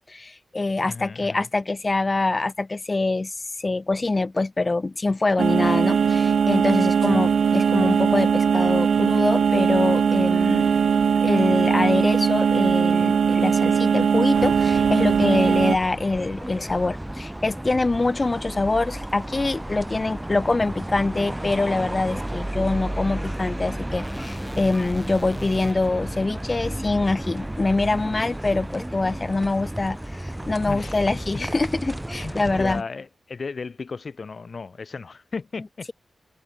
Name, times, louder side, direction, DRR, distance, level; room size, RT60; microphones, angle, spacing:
voice 1, 0.1-10.7 11.2-32.8, left 3 dB, 35° left, 2.4 m, -24 dB
voice 2, 0.9-1.5 7.1-7.4 30.7-31.0 32.2-35.9, left 4 dB, 60° left, 1.9 m, -35 dB
sound 1, 5.4-15.8, right 6 dB, 85° right, 0.6 m, -20 dB
sound 2, 14.3-32.8, right 1 dB, 10° right, 1.6 m, -33 dB
sound 3, 24.0-28.2, equal, 5° left, 2.0 m, -41 dB
cardioid pair, 55°, 0 cm